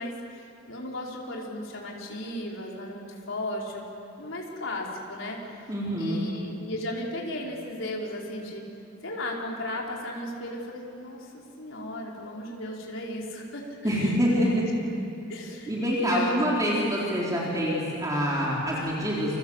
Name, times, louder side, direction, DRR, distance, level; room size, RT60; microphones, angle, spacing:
voice 1, 0.0-3.9 4.2-5.4 6.0-8.6 9.0-14.7 15.3-15.7 16.0-16.4 16.7-16.8, left 1 dB, 75° left, -2 dB, 4.6 m, -35 dB
voice 2, 5.7-6.2 13.8-14.7 15.7-19.4, equal, 15° right, -5 dB, 4.1 m, -26 dB
28.5 x 25.5 x 8.2 m, 2.7 s
head